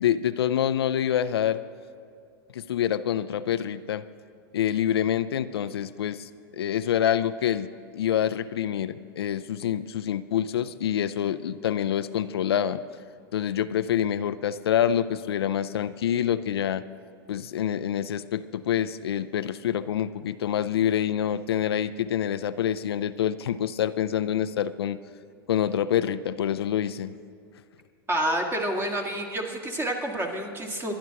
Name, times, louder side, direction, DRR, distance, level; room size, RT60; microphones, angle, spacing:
voice 1, 0.0-1.6 2.5-4.0 4.5-12.8 13.3-16.8 17.3-25.0 25.5-27.1, left 10 dB, 85° left, 13 dB, 0.4 m, -26 dB
voice 2, 28.1-30.9, right 1 dB, 15° right, 2 dB, 1.8 m, -28 dB
24.0 x 11.0 x 2.9 m, 2.3 s
hypercardioid pair, 110°, 13 cm